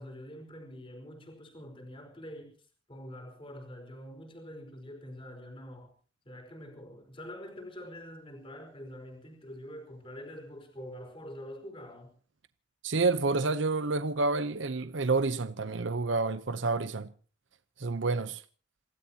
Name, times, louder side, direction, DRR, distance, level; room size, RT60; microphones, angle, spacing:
voice 1, 0.0-5.9 6.2-12.1, equal, 30° left, 5.1 m, -45 dB
voice 2, 12.8-17.1 17.8-18.4, right 3 dB, 75° right, 0.8 m, -29 dB
28.0 x 17.0 x 2.9 m
head